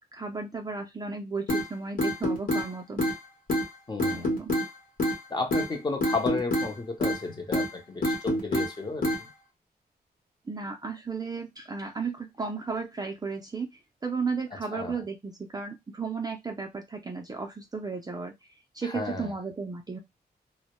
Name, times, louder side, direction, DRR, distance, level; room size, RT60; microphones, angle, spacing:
voice 1, 0.1-3.1 4.1-4.6 10.5-13.7 14.0-18.3 18.7-20.0, right 4 dB, 25° right, 0.4 m, -34 dB
sound 1, 1.5-1.6 2.0-2.7 3.0-3.2 3.5-3.7 4.0-4.7 5.0-5.2 5.5-5.7 6.0-6.7 7.0-7.2 7.5-7.7 8.0-8.7 9.0-9.2, equal, 55° left, 0.9 m, -26 dB
voice 2, 3.9-4.3 5.3-9.3 14.7-15.0 18.8-19.3, left 3 dB, 25° left, 0.6 m, -33 dB
2.1 x 2.0 x 2.9 m
wide cardioid pair, 145°, 17 cm